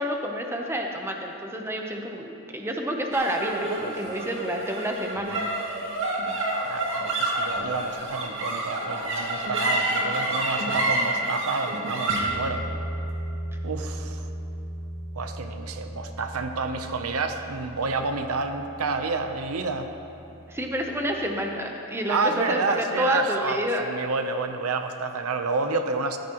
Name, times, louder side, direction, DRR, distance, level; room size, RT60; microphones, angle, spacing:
voice 1, 0.0-5.4 20.5-23.8, equal, 10° right, 2 dB, 0.8 m, -29 dB
sound 1, 3.1-19.7, right 1 dB, 60° right, 2.1 m, -30 dB
voice 2, 3.8-4.1 6.6-12.7 13.6-14.3 15.1-19.9 22.1-26.2, right 3 dB, 80° right, 7 dB, 0.7 m, -29 dB
14.0 x 13.5 x 3.0 m, 2.8 s
head